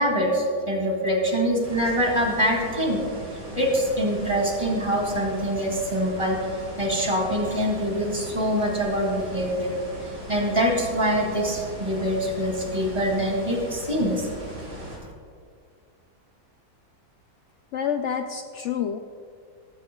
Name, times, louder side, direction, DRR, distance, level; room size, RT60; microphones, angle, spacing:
voice 1, 0.0-3.0 3.5-9.8 10.3-14.3, equal, 20° right, -1 dB, 2.4 m, -24 dB
sound 1, 1.6-15.0, right 1 dB, 55° right, 4.1 m, -39 dB
voice 2, 17.7-19.0, left 8 dB, 80° left, 6 dB, 0.6 m, -28 dB
19.0 x 14.0 x 2.3 m, 2.2 s
omnidirectional pair, 1.8 m